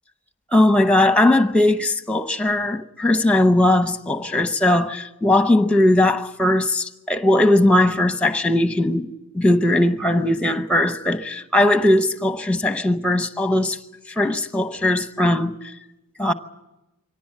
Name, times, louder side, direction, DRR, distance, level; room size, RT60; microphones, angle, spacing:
voice 1, 0.5-9.1 9.3-13.8 14.2-15.7 16.2-16.3, left 1 dB, 5° left, 0.8 m, -19 dB
24.0 x 18.0 x 8.6 m
head